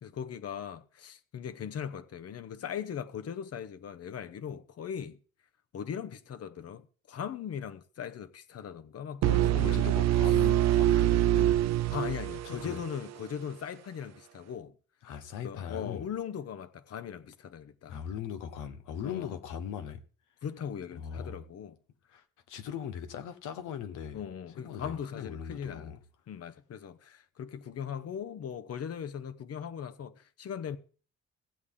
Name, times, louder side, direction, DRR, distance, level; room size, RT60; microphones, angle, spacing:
voice 1, 0.0-5.2 5.7-9.9 11.9-14.7 15.4-18.0 19.0-19.4 20.4-21.8 24.1-25.9 26.3-30.8, left 8 dB, 55° left, 0.9 m, -39 dB
sound 1, 9.2-13.1, right 14 dB, 60° right, 0.5 m, -25 dB
voice 2, 9.5-11.5 11.8-11.9 12.4-12.8 15.0-16.1 17.9-20.0 21.0-21.4 22.1-24.2 24.6-26.0, left 8 dB, 90° left, 1.1 m, -39 dB
15.0 x 8.3 x 3.7 m
cardioid pair, 90°, 30 cm